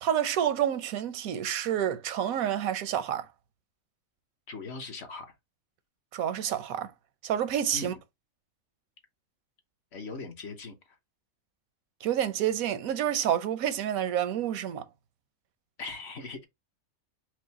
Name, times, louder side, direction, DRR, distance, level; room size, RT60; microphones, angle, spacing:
voice 1, 0.0-3.3 6.1-6.9 7.2-7.9 12.0-14.8, right 10 dB, 85° right, 1.1 m, -28 dB
voice 2, 4.5-5.3 7.7-8.0 9.9-11.0 15.8-16.4, left 3 dB, 55° left, 1.1 m, -40 dB
4.7 x 2.0 x 4.0 m
omnidirectional pair, 1.4 m